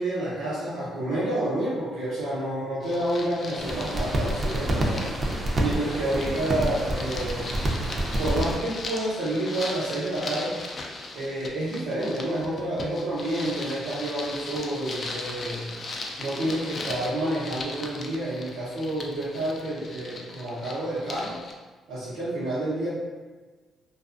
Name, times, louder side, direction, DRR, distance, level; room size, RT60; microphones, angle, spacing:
voice 1, 0.0-5.1 5.6-7.5 8.2-10.5 11.1-15.7 16.2-21.4 21.9-22.9, right 1 dB, 90° right, -10 dB, 0.7 m, -29 dB
sound 1, 2.8-21.5, left 3 dB, 45° left, 0.3 m, -38 dB
sound 2, 3.6-8.6, right 1 dB, 30° right, 0.5 m, -28 dB
2.4 x 2.4 x 2.4 m, 1.3 s
cardioid pair, 90°, 0 cm